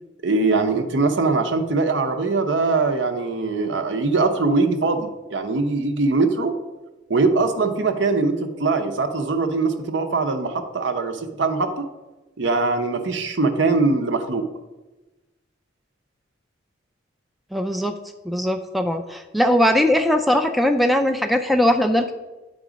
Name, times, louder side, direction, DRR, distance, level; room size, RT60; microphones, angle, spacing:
voice 1, 0.2-6.5 7.1-11.8 12.4-14.5, right 3 dB, 65° right, 7 dB, 0.7 m, -22 dB
voice 2, 17.5-17.9 18.3-22.1, left 1 dB, ahead, 5 dB, 0.3 m, -20 dB
9.5 x 3.7 x 5.0 m, 1.1 s
head